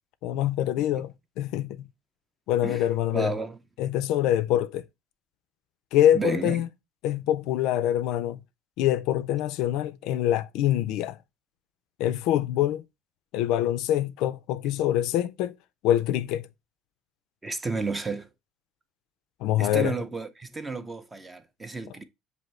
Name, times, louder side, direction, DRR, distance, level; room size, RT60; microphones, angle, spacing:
voice 1, 0.2-1.9 2.5-3.3 3.8-4.8 5.9-6.7 7.0-8.4 8.8-11.2 12.0-12.8 13.3-15.5 15.8-16.5 19.4-19.9, left 12 dB, 70° left, 0.3 m, -25 dB
voice 2, 3.1-3.6 6.1-6.7 17.4-18.3 19.6-22.0, right 4 dB, 15° right, 0.5 m, -32 dB
6.4 x 2.6 x 3.0 m
cardioid pair, 125°, 0 cm